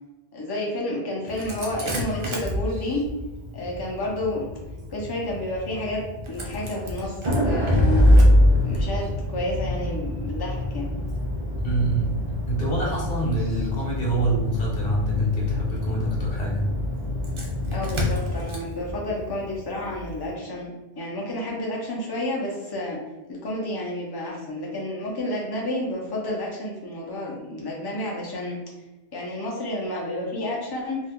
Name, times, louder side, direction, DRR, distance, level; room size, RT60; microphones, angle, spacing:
voice 1, 0.3-3.0 3.5-4.5 4.9-7.2 7.4-8.1 8.6-10.9 17.7-23.0 23.3-28.6 29.1-31.0, left 1 dB, 25° left, -3 dB, 0.6 m, -30 dB
Engine starting, 1.3-20.2, left 1 dB, 40° right, 0.4 m, -25 dB
voice 2, 11.6-12.1 12.5-16.7, right 1 dB, 55° left, -4 dB, 1.2 m, -26 dB
2.7 x 2.3 x 3.6 m, 1.1 s
omnidirectional pair, 1.2 m